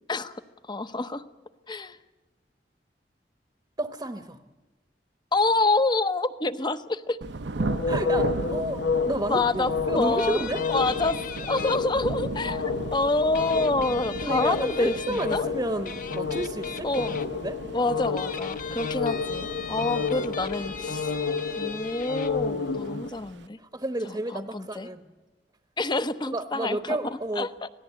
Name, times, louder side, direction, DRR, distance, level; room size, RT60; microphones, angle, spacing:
voice 1, 0.7-1.2 1.7-2.0 5.3-7.2 9.3-12.6 12.9-15.5 16.8-17.2 17.7-21.1 21.6-23.6 24.3-24.9 25.8-27.0 27.4-27.7, left 2 dB, 25° left, 12 dB, 0.8 m, -27 dB
voice 2, 3.8-4.4 7.9-10.6 14.2-16.9 17.3-17.6 23.6-25.1 26.3-27.5, right 1 dB, 20° right, 7 dB, 0.9 m, -31 dB
Thunder / Rain, 7.2-23.5, right 2 dB, 80° right, 0.8 m, -37 dB
sound 1, 7.6-23.1, left 5 dB, 80° left, 0.9 m, -31 dB
sound 2, 10.2-11.8 13.3-15.4 15.9-17.3 18.0-22.3, left 6 dB, 50° left, 0.9 m, -39 dB
25.5 x 18.0 x 8.5 m, 1.2 s
head